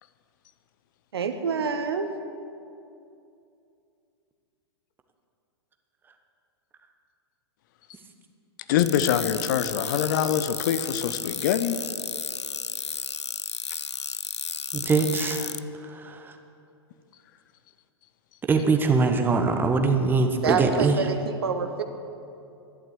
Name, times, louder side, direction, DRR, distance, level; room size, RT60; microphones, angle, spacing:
voice 1, 1.1-2.1 20.4-21.8, right 5 dB, 65° right, 8 dB, 1.1 m, -27 dB
voice 2, 8.7-11.8, left 9 dB, 45° left, 11 dB, 0.7 m, -24 dB
sound 1, 8.8-15.6, left 5 dB, 85° left, 0.4 m, -33 dB
voice 3, 14.7-15.5 15.8-16.3 18.5-21.0, right 4 dB, 15° right, 5 dB, 1.2 m, -23 dB
12.0 x 11.5 x 7.8 m, 2.7 s
figure-of-eight pair, 100°, 14 cm